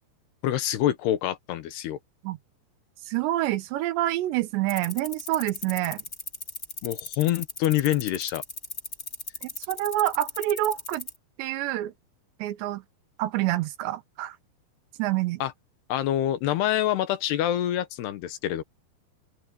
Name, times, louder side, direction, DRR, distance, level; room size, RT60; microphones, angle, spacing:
voice 1, 0.4-2.0 6.8-8.4 15.4-15.5 15.9-18.6, left 12 dB, 70° left, 3.0 m, -26 dB
voice 2, 3.1-6.0 9.4-11.1 11.4-11.9 12.4-12.8 13.2-14.4 15.0-15.4, right 14 dB, 80° right, 3.3 m, -27 dB
sound 1, 4.7-11.1, left 3 dB, 20° left, 2.8 m, -36 dB
open air
omnidirectional pair, 5.1 m